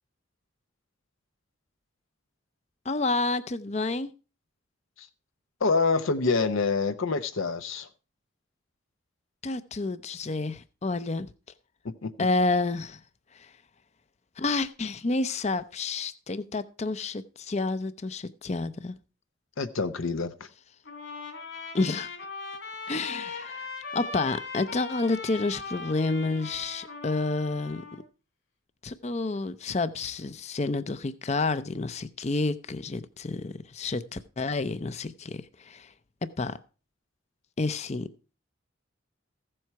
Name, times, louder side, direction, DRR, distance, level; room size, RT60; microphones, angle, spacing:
voice 1, 2.8-4.1 9.4-11.3 12.2-13.0 13.3-13.5 14.4-19.0 21.7-22.1 22.9-27.8 28.8-35.9 36.4-36.6 37.6-38.1, left 3 dB, 35° left, 0.6 m, -29 dB
voice 2, 5.6-7.9 11.8-12.1 19.6-20.3, left 4 dB, 85° left, 0.8 m, -26 dB
Trumpet, 20.8-28.0, left 4 dB, 60° left, 3.3 m, -39 dB
15.0 x 7.8 x 4.6 m
head